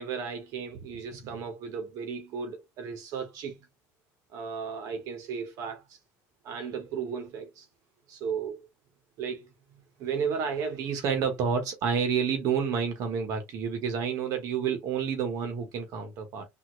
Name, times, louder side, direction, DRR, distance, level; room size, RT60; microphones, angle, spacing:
voice 1, 0.0-3.6 4.3-6.0 6.4-7.7 8.1-8.7 9.2-16.5, right 6 dB, 55° right, 1.3 m, -32 dB
3.6 x 2.8 x 3.1 m
cardioid pair, 135°, 7 cm